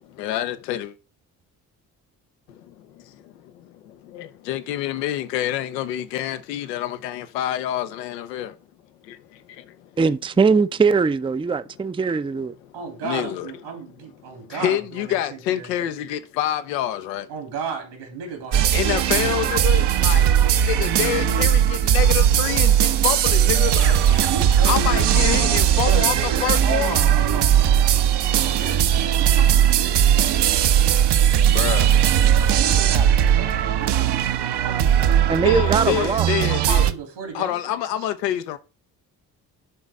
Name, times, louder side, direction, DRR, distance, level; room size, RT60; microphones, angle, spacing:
voice 1, 0.2-0.9 4.1-8.5 13.0-13.5 14.5-17.3 18.7-20.2 20.6-24.3 24.6-27.0 31.5-31.9 35.4-36.8 37.3-38.6, left 12 dB, 85° left, 0.8 m, -27 dB
voice 2, 10.0-12.5 35.3-36.3, right 5 dB, 10° right, 0.5 m, -20 dB
voice 3, 12.7-16.0 17.3-19.4 19.7-20.0 24.3-25.2 25.7-30.5 32.3-35.6 35.9-37.8, right 5 dB, 75° right, 3.3 m, -34 dB
sound 1, 18.5-36.9, right 9 dB, 60° right, 1.0 m, -18 dB
11.0 x 4.0 x 3.6 m
hypercardioid pair, 40°, 48 cm